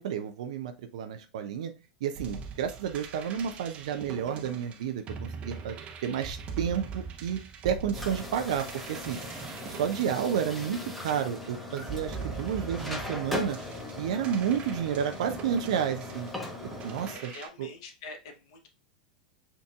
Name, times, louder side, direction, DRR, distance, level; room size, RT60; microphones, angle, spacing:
voice 1, 0.0-1.7 2.0-5.8 6.0-9.2 9.7-13.6 14.0-16.3 16.8-17.3 17.6-17.7, right 8 dB, 55° right, 7 dB, 0.5 m, -31 dB
sound 1, 2.1-11.2 11.8-17.5, right 5 dB, 30° right, 0.7 m, -42 dB
sound 2, 7.9-17.2, left 2 dB, ahead, 1.0 m, -39 dB
voice 2, 17.1-18.7, left 3 dB, 50° left, 6 dB, 0.8 m, -45 dB
7.2 x 2.6 x 2.3 m, 0.31 s
figure-of-eight pair, 85°, 4 cm